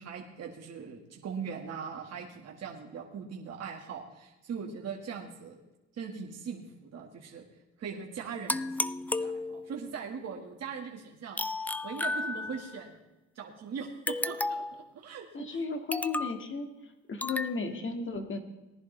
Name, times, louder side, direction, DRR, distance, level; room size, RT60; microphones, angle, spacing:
voice 1, 0.0-5.6 5.9-7.4 7.8-13.0 13.4-15.6, right 6 dB, 55° right, 0 dB, 1.8 m, -41 dB
sound 1, 8.5-9.9 11.4-12.8 14.1-14.8 15.9-16.4 17.2-17.6, left 2 dB, 5° left, 0.3 m, -33 dB
voice 2, 15.3-16.7 17.1-18.4, left 4 dB, 40° left, 5 dB, 2.0 m, -34 dB
19.0 x 10.5 x 3.3 m, 1.0 s
cardioid pair, 90°, 30 cm